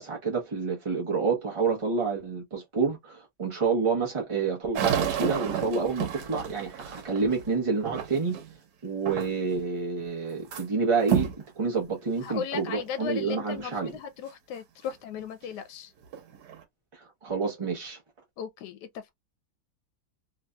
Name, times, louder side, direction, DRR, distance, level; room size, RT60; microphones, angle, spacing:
voice 1, 0.0-8.4 8.8-13.9 16.9-18.0, right 4 dB, 30° right, 0.6 m, -28 dB
sound 1, 4.7-8.5 9.1-9.6 10.0-10.6 11.0-11.4 12.1-12.2 12.9-13.0 15.4-15.5 16.0-16.6, right 9 dB, 85° right, 1.4 m, -31 dB
voice 2, 12.2-15.9 18.4-19.1, left 8 dB, 85° left, 1.2 m, -36 dB
3.1 x 2.6 x 2.2 m
omnidirectional pair, 1.8 m